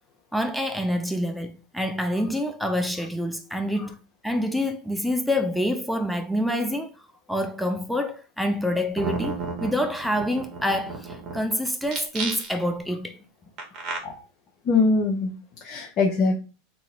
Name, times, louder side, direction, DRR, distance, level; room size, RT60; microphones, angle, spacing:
voice 1, 0.3-4.0 4.2-6.9 7.3-13.2, equal, ahead, 0.4 m, -27 dB
sound 1, 9.0-11.4 11.8-12.7 13.6-14.0, right 4 dB, 40° right, 1.3 m, -32 dB
voice 2, 14.6-16.4, left 3 dB, 45° left, 0.7 m, -23 dB
2.8 x 2.5 x 4.2 m
hypercardioid pair, 90°, 0 cm